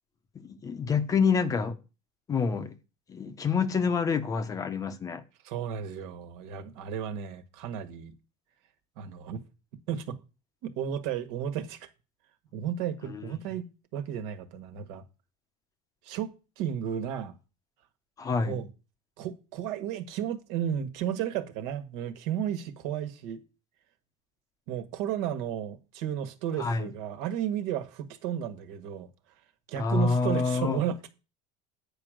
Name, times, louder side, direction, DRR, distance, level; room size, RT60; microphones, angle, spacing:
voice 1, 0.4-1.8 2.3-2.7 3.1-5.2 13.1-13.3 18.2-18.6 26.6-26.9 29.8-30.8, left 5 dB, 20° left, 0.8 m, -27 dB
voice 2, 5.4-8.1 9.0-9.4 9.9-10.2 10.6-11.9 12.5-15.0 16.0-16.3 16.6-17.3 18.4-18.7 19.2-23.4 24.7-29.1 29.7-31.1, right 9 dB, 70° right, 1.6 m, -33 dB
9.2 x 5.2 x 7.6 m
cardioid pair, 155°, 16 cm